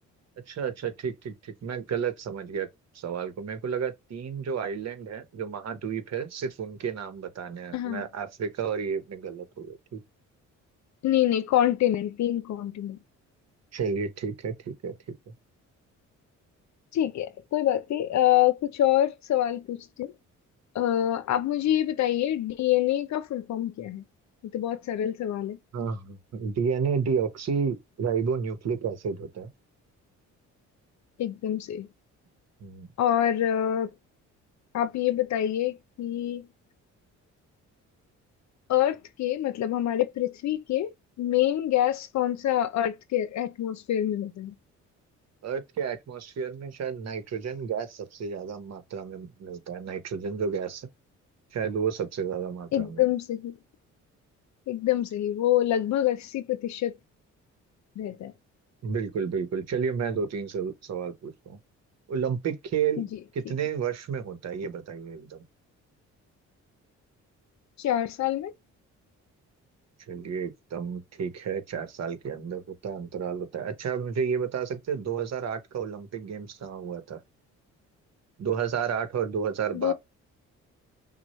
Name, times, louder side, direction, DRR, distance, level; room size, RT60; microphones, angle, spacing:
voice 1, 0.5-2.7 2.9-10.0 13.7-15.3 25.7-29.5 32.6-32.9 45.4-50.9 51.5-53.0 58.8-61.6 62.1-65.4 70.1-77.2 78.4-79.9, right 6 dB, 60° right, 1.2 m, -31 dB
voice 2, 7.7-8.0 11.0-13.0 16.9-20.1 20.7-24.0 24.5-25.6 31.2-31.9 33.0-33.9 34.7-36.5 38.7-44.5 52.7-53.6 54.7-56.9 58.0-58.3 63.0-63.2 67.8-68.5 79.7-79.9, left 12 dB, 65° left, 0.7 m, -26 dB
6.1 x 2.4 x 3.1 m
cardioid pair, 90°, 30 cm